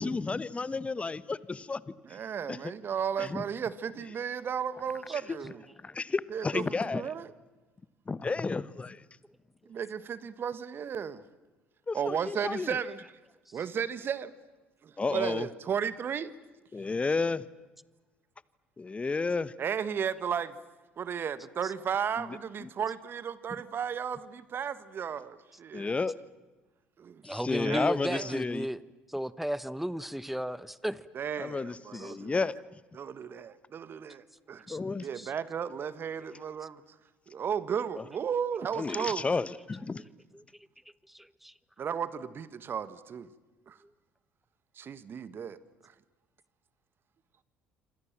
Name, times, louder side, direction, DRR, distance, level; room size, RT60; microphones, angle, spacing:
voice 1, 0.0-1.8 2.5-2.6 3.2-3.4 5.9-7.0 8.1-9.0 11.9-12.7 15.0-15.5 16.7-17.4 18.8-19.5 25.7-26.1 27.4-28.7 31.4-32.5 34.7-35.1 38.8-40.0, left 4 dB, 25° left, 1.3 m, -31 dB
voice 2, 2.0-5.6 6.3-7.3 9.7-11.2 11.9-13.1 13.5-14.3 14.8-16.3 19.6-20.5 21.0-26.0 27.0-27.2 27.6-28.4 31.1-32.5 32.9-34.7 35.0-36.8 37.3-39.3 41.8-43.3 43.7-43.8 44.8-45.6, right 7 dB, 45° right, 1.7 m, -34 dB
voice 3, 27.2-28.8 29.1-31.1 31.9-32.2 34.7-34.8 35.1-35.3 40.0-40.1 40.3-40.4 41.1-41.5, equal, 5° right, 1.2 m, -35 dB
27.0 x 26.0 x 7.6 m
hypercardioid pair, 60°, 5 cm